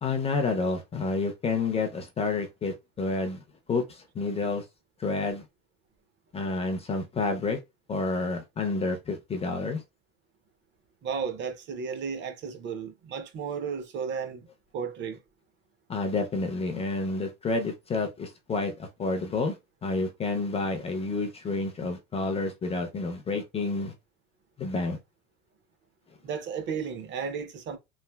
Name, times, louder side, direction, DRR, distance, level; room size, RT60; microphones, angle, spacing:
voice 1, 0.0-3.4 3.7-4.6 5.0-5.4 6.3-7.6 7.9-9.8 15.9-23.9 24.6-25.0, left 3 dB, 20° left, 0.4 m, -29 dB
voice 2, 11.0-14.5 14.7-15.2 26.2-27.8, right 6 dB, 40° right, 0.5 m, -34 dB
3.2 x 2.5 x 2.2 m
cardioid pair, 130°, 30 cm